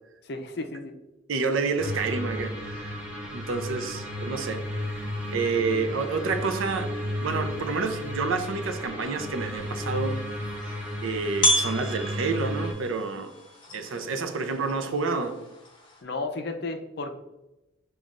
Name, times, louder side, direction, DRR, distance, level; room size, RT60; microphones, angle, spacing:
voice 1, 0.2-0.9 16.0-17.1, left 2 dB, 55° left, 5 dB, 0.5 m, -33 dB
voice 2, 1.3-3.0 3.3-4.6 5.3-10.2 10.7-13.3 13.7-15.4, right 4 dB, 85° right, 7 dB, 0.5 m, -29 dB
sound 1, 1.8-12.7, left 1 dB, 5° right, 0.7 m, -33 dB
sound 2, 9.4-16.0, left 1 dB, 25° left, 0.7 m, -32 dB
7.0 x 2.4 x 2.4 m, 0.96 s
head